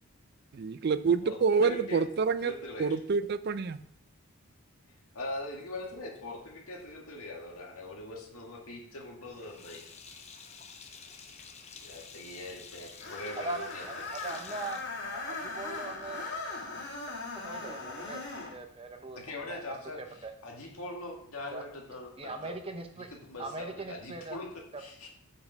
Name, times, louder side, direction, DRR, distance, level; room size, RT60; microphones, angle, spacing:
voice 1, 0.5-2.5 2.8-3.8, right 5 dB, 45° right, 13 dB, 0.4 m, -27 dB
voice 2, 1.2-2.1 2.4-3.0 5.1-9.9 11.8-13.9 19.1-22.5 22.9-25.1, left 2 dB, 75° left, 0 dB, 1.9 m, -42 dB
Sink (filling or washing), 9.3-15.7, left 5 dB, 30° left, 0.8 m, -50 dB
Screech, 13.0-18.5, left 3 dB, 50° left, 2.5 m, -39 dB
voice 3, 13.4-14.8 15.1-16.4 17.1-17.2 17.4-20.3 21.5-21.6 22.2-23.1 23.4-24.4, right 3 dB, 25° right, 6 dB, 0.8 m, -40 dB
8.3 x 5.2 x 5.0 m, 0.67 s
head